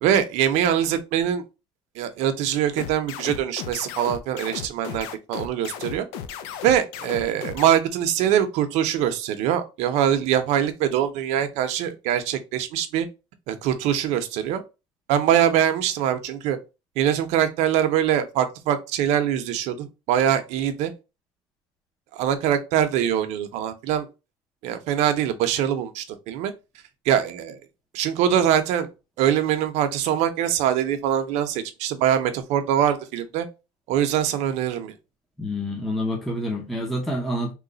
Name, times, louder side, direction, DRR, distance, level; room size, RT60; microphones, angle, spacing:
voice 1, 0.0-1.4 2.0-6.1 6.6-13.1 13.5-14.6 15.1-16.6 17.0-20.9 22.1-24.1 24.6-26.5 27.1-27.6 27.9-28.9 29.2-33.5 33.9-34.9, right 10 dB, 65° right, 0.7 m, -23 dB
sound 1, 2.8-7.7, left 8 dB, 85° left, 0.5 m, -35 dB
voice 2, 35.4-37.5, left 1 dB, ahead, 0.6 m, -27 dB
3.1 x 2.2 x 3.9 m
cardioid pair, 145°, 13 cm